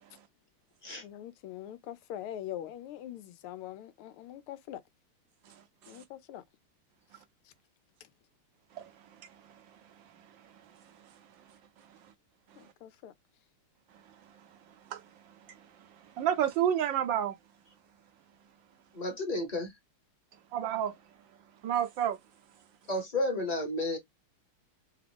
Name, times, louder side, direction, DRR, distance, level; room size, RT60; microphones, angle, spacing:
voice 1, 1.0-4.8 5.9-6.4 12.6-13.1, left 11 dB, 90° left, 1.5 m, -43 dB
voice 2, 16.2-17.3 20.5-21.0 21.6-22.2, right 10 dB, 70° right, 1.2 m, -28 dB
voice 3, 18.9-19.7 22.9-24.0, left 2 dB, 25° left, 0.9 m, -32 dB
3.9 x 2.4 x 3.4 m
omnidirectional pair, 2.3 m